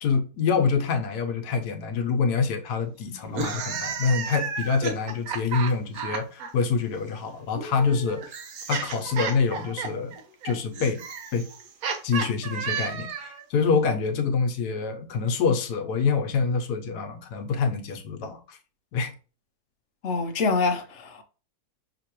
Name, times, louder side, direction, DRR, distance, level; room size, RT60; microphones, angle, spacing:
voice 1, 0.0-8.3 8.7-10.1 10.4-11.0 11.3-11.4 12.0-18.6 18.9-19.1, left 5 dB, 75° left, 1.3 m, -26 dB
sound 1, 3.2-6.5 7.5-13.4, right 6 dB, 65° right, 1.2 m, -32 dB
voice 2, 20.0-21.2, left 4 dB, 60° left, 0.8 m, -25 dB
5.9 x 2.9 x 2.9 m
omnidirectional pair, 1.7 m